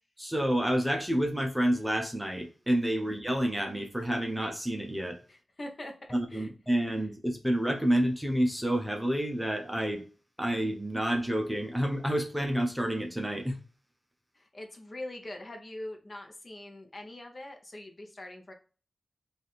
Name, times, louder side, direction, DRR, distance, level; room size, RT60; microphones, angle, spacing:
voice 1, 0.2-5.2 6.1-10.0 10.4-13.6, right 1 dB, 5° right, 0.6 m, -29 dB
voice 2, 5.3-5.9 6.3-6.5 14.3-18.5, left 1 dB, 35° left, 0.8 m, -43 dB
3.4 x 2.4 x 4.1 m
wide cardioid pair, 110°, 0 cm